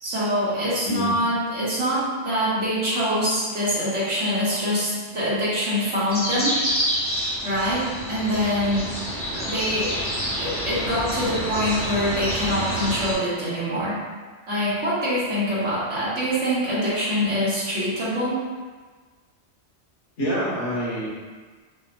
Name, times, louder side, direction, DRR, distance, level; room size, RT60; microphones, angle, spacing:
voice 1, 0.0-6.6 7.4-8.9 9.5-10.1 10.4-14.0 14.5-18.4, equal, 75° right, -10 dB, 1.8 m, -24 dB
sound 1, 6.1-13.1, equal, 15° left, 0.7 m, -28 dB
voice 2, 20.2-21.1, equal, 80° left, -7 dB, 1.5 m, -27 dB
5.7 x 2.8 x 2.2 m, 1.4 s
omnidirectional pair, 1.2 m